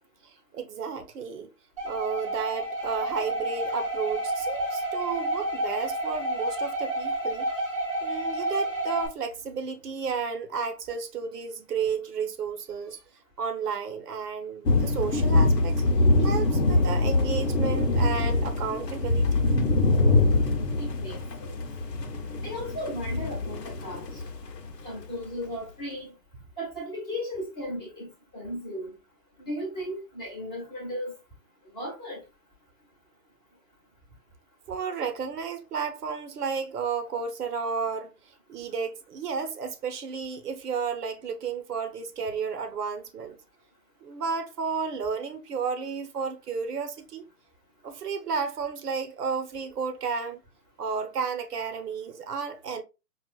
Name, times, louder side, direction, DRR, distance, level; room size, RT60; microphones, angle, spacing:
voice 1, 0.5-1.5 1.8-7.5 8.0-13.0 13.4-15.8 16.2-19.4 34.7-38.1 38.5-43.4 44.0-47.2 47.8-50.4 50.8-52.8, right 5 dB, 70° right, 0.8 m, -32 dB
sound 1, 1.8-9.1, right 1 dB, 25° right, 0.4 m, -30 dB
sound 2, 14.7-24.8, left 2 dB, 85° left, 0.9 m, -24 dB
voice 2, 20.8-21.6 22.4-24.2 24.8-26.1 26.6-28.1 28.3-28.9 29.4-31.2 31.7-32.2, equal, 10° left, 0.9 m, -36 dB
4.8 x 2.4 x 2.3 m
hypercardioid pair, 145°, 48 cm